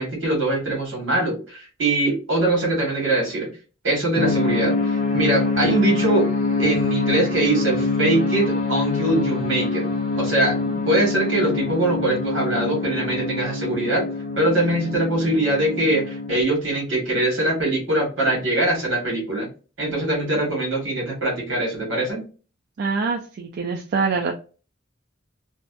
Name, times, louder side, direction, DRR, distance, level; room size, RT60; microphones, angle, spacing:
voice 1, 0.0-3.5 3.8-6.3 6.6-9.9 10.1-14.0 14.4-19.5 19.8-22.2, right 2 dB, 75° right, -1 dB, 1.4 m, -22 dB
sound 1, 4.1-16.4, left 3 dB, 45° left, 0.6 m, -25 dB
voice 2, 22.8-24.3, right 4 dB, 55° right, 2 dB, 0.3 m, -24 dB
2.5 x 2.2 x 2.3 m, 0.36 s
head